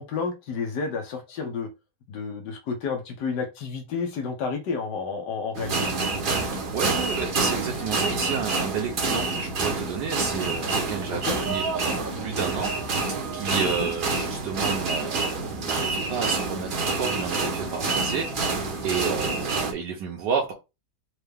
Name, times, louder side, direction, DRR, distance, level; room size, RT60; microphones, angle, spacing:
voice 1, 0.0-1.7 2.1-5.9 11.1-11.4 13.8-13.9, left 5 dB, 80° left, 1.4 m, -31 dB
sound 1, 5.5-19.7, right 3 dB, 40° right, 0.8 m, -27 dB
voice 2, 6.7-11.2 11.5-20.5, right 6 dB, 80° right, 1.4 m, -31 dB
4.5 x 2.3 x 3.4 m
omnidirectional pair, 1.8 m